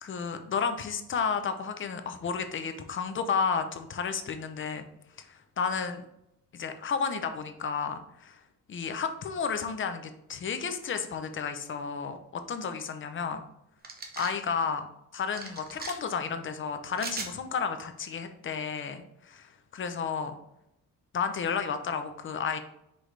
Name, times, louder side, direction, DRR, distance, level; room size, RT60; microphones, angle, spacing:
voice 1, 0.0-4.8 5.2-6.0 6.5-8.4 8.7-13.4 14.2-20.4 21.1-22.6, left 6 dB, 35° left, 8 dB, 0.6 m, -32 dB
sound 1, 13.8-14.4 15.4-15.9 17.0-17.3, right 4 dB, 25° right, 0.8 m, -38 dB
6.0 x 4.9 x 3.2 m, 0.82 s
cardioid pair, 180°, 34 cm